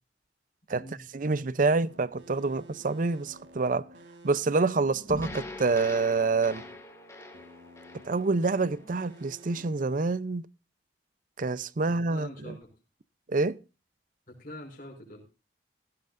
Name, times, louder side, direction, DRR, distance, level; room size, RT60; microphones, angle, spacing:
voice 1, 1.1-3.9 4.2-6.6 8.0-10.5 11.4-12.6 13.3-13.6, right 3 dB, 50° right, 0.6 m, -27 dB
sound 1, 1.8-10.0, right 1 dB, 80° right, 4.1 m, -52 dB
sound 2, 5.1-9.4, left 2 dB, 15° left, 2.1 m, -43 dB
voice 2, 11.8-12.7 14.3-15.2, left 1 dB, 50° left, 4.6 m, -45 dB
16.5 x 15.5 x 2.5 m
head